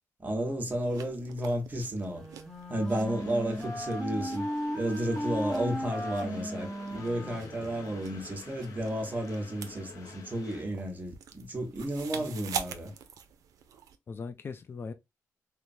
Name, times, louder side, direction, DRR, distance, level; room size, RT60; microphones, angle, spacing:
voice 1, 0.2-2.2 2.7-4.5 4.7-12.9, right 1 dB, 30° right, 1.0 m, -32 dB
sound 1, 0.7-14.0, right 8 dB, 90° right, 0.4 m, -46 dB
Wind instrument woodwind instrument, 2.1-8.2, equal, 10° left, 0.9 m, -36 dB
Train, 3.0-10.6, left 5 dB, 85° left, 0.6 m, -49 dB
voice 2, 7.3-7.7 12.1-12.8 14.1-14.9, left 5 dB, 40° left, 0.3 m, -42 dB
3.1 x 2.0 x 2.5 m
cardioid pair, 90°, 6 cm